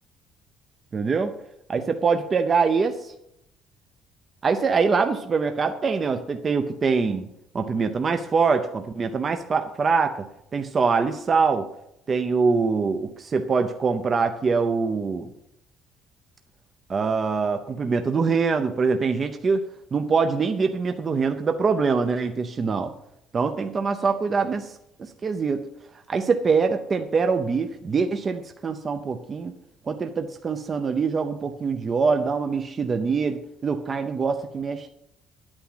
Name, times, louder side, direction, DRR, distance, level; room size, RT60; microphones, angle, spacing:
voice 1, 0.9-1.3 1.7-3.1 4.4-7.3 7.5-10.3 10.5-11.7 12.1-15.3 16.9-19.6 19.9-22.9 23.3-25.6 26.1-29.5 29.9-34.9, right 5 dB, 25° right, 7 dB, 0.6 m, -24 dB
11.0 x 8.8 x 5.7 m, 0.79 s
cardioid pair, 180°, 0 cm